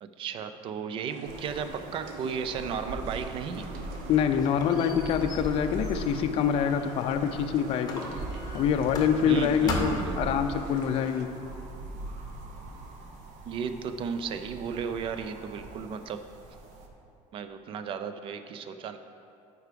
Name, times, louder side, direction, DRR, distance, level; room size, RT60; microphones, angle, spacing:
voice 1, 0.0-3.7 9.2-10.3 13.4-16.2 17.3-19.0, right 6 dB, 40° right, 9 dB, 0.4 m, -34 dB
sound 1, 1.1-11.3, right 4 dB, 80° right, 0.8 m, -44 dB
sound 2, 1.3-16.9, right 2 dB, 60° right, 1.0 m, -42 dB
Squeak, 3.7-7.4 7.9-9.4 9.7-10.2, left 3 dB, 30° left, 0.9 m, -38 dB
voice 2, 4.1-8.0 8.5-11.3, left 8 dB, 45° left, 7 dB, 0.4 m, -25 dB
9.3 x 4.8 x 5.1 m, 2.6 s
cardioid pair, 165°, 14 cm